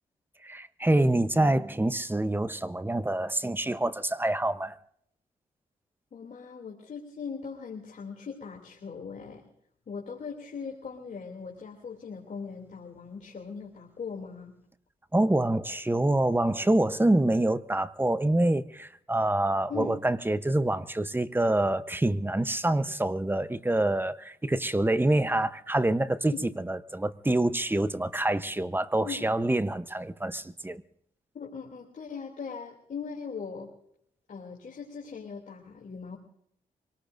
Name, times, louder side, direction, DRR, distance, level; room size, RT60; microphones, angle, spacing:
voice 1, 0.4-4.8 15.1-26.3 26.7-30.8, right 1 dB, 15° right, 0.9 m, -26 dB
voice 2, 6.1-9.5 9.9-14.5 19.7-20.0 26.3-26.5 29.0-29.3 31.3-33.7 34.3-36.2, left 5 dB, 60° left, 2.9 m, -40 dB
25.0 x 18.5 x 2.6 m
cardioid pair, 55°, 15 cm